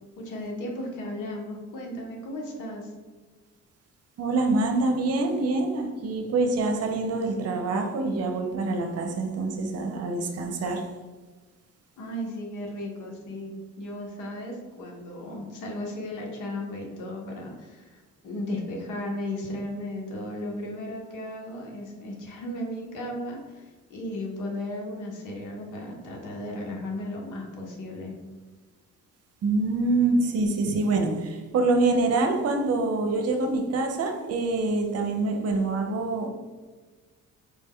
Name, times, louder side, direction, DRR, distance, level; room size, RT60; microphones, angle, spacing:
voice 1, 0.2-2.9 12.0-13.5 13.8-28.1, left 1 dB, 85° left, 0 dB, 0.9 m, -35 dB
voice 2, 4.2-10.9 29.4-36.3, right 3 dB, 55° right, 4 dB, 0.7 m, -25 dB
4.5 x 2.1 x 3.6 m, 1.3 s
cardioid pair, 90°, 30 cm